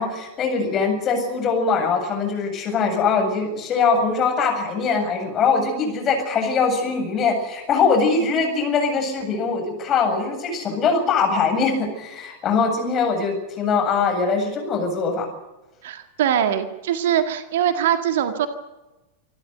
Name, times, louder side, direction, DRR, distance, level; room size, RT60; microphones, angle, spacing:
voice 1, 0.0-15.3, left 5 dB, 30° left, 4 dB, 7.6 m, -22 dB
voice 2, 15.8-18.5, right 9 dB, 55° right, 8 dB, 1.8 m, -22 dB
27.0 x 13.0 x 9.3 m, 1.1 s
figure-of-eight pair, 90°, 0 cm